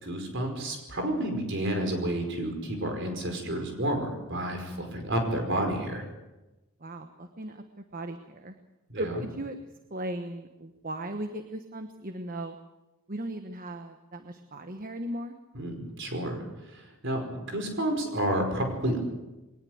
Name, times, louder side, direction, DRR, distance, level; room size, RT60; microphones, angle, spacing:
voice 1, 0.0-6.0 8.9-9.1 15.5-19.0, right 1 dB, 55° right, 4 dB, 5.1 m, -30 dB
voice 2, 6.8-7.6 7.9-8.5 9.0-9.6 9.9-12.6 13.1-15.4, right 1 dB, 40° right, 7 dB, 1.2 m, -37 dB
22.0 x 19.0 x 8.0 m, 1.0 s
head